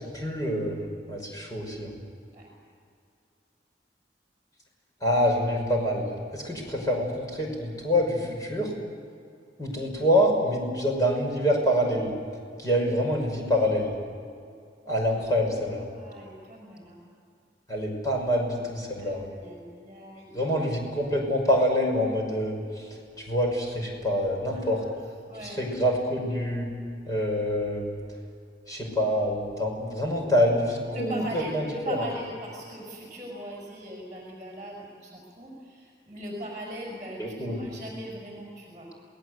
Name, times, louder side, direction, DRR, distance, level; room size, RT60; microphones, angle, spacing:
voice 1, 0.1-1.9 5.0-8.7 9.6-12.1 12.6-13.9 14.9-15.8 17.7-19.2 20.3-22.8 23.3-24.8 25.4-26.7 27.1-27.9 28.7-32.1 37.2-37.6, equal, 20° left, 0 dB, 6.0 m, -26 dB
voice 2, 15.6-17.0 19.0-20.5 24.5-24.8 25.3-25.6 30.9-38.9, right 1 dB, 20° right, -3 dB, 5.7 m, -39 dB
28.5 x 19.5 x 8.1 m, 2.4 s
head